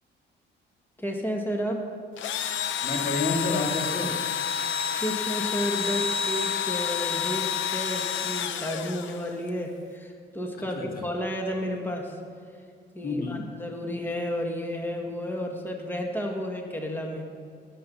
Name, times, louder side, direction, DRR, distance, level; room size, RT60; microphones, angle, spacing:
voice 1, 1.0-1.9 5.0-12.2 12.9-17.3, equal, 10° left, 1 dB, 1.8 m, -32 dB
Engine / Drill, 2.2-9.5, left 8 dB, 75° left, 0.7 m, -29 dB
voice 2, 2.8-4.2 10.8-11.0 13.0-13.5, left 2 dB, 50° left, 1 dB, 2.1 m, -29 dB
19.5 x 8.0 x 5.6 m, 2.3 s
cardioid pair, 90°, 20 cm